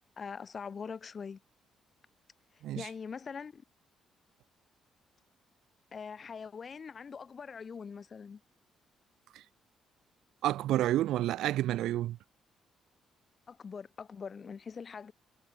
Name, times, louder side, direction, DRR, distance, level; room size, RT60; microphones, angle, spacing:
voice 1, 0.2-1.4 2.7-3.6 5.9-8.4 13.5-15.1, left 6 dB, 40° left, 4.8 m, -43 dB
voice 2, 10.4-12.2, right 14 dB, 85° right, 0.7 m, -29 dB
cardioid pair, 90°, 0 cm